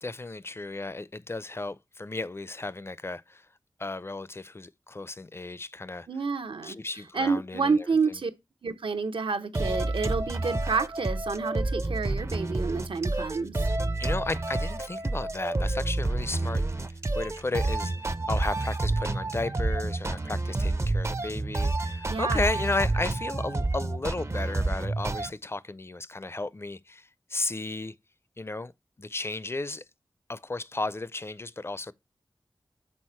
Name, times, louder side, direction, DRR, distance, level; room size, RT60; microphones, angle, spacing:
voice 1, 0.0-3.5 3.8-6.1 6.6-7.9 14.0-18.0 18.3-27.9 28.4-28.7 29.0-29.8 30.3-31.9, left 2 dB, 30° left, 0.4 m, -34 dB
voice 2, 6.1-6.8 7.1-8.3 8.6-13.7 22.1-22.4, right 4 dB, 80° right, 0.7 m, -29 dB
sound 1, 9.5-25.3, right 2 dB, 30° right, 0.4 m, -29 dB
6.4 x 4.0 x 4.3 m
wide cardioid pair, 55°, 9 cm